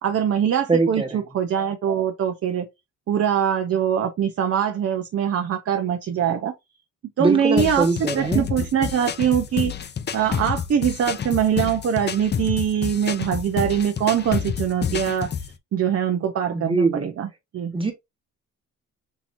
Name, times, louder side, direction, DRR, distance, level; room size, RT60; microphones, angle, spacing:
voice 1, 0.0-2.6 3.1-6.5 7.2-9.7 10.1-15.3 15.7-17.3 17.5-17.7, right 8 dB, 50° right, 0.8 m, -23 dB
voice 2, 0.7-1.2 7.2-8.5 16.5-17.1 17.7-17.9, right 3 dB, 15° right, 1.5 m, -22 dB
sound 1, 7.6-15.5, left 7 dB, 35° left, 0.6 m, -29 dB
5.9 x 2.9 x 2.7 m
cardioid pair, 90°, 30 cm